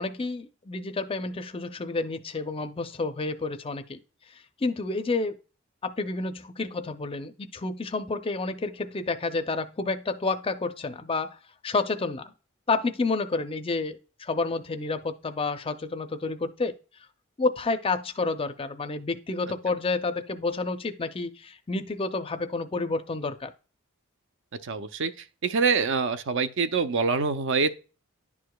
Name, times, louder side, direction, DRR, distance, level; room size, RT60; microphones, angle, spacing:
voice 1, 0.0-4.0 4.6-5.4 5.8-11.3 11.6-12.3 12.7-16.7 17.4-23.5, left 3 dB, 25° left, 0.5 m, -29 dB
voice 2, 24.6-25.1 25.4-27.7, right 5 dB, 60° right, 0.5 m, -25 dB
11.0 x 4.7 x 2.2 m
head